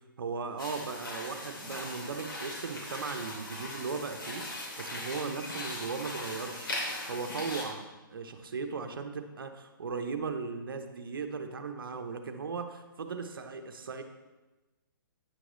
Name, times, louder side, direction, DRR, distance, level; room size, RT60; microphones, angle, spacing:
voice 1, 0.2-14.0, right 5 dB, 80° right, 6 dB, 1.0 m, -37 dB
sound 1, 0.6-7.6, left 1 dB, 70° left, 2.9 m, -39 dB
9.7 x 6.4 x 3.2 m, 1.2 s
hypercardioid pair, 145°, 12 cm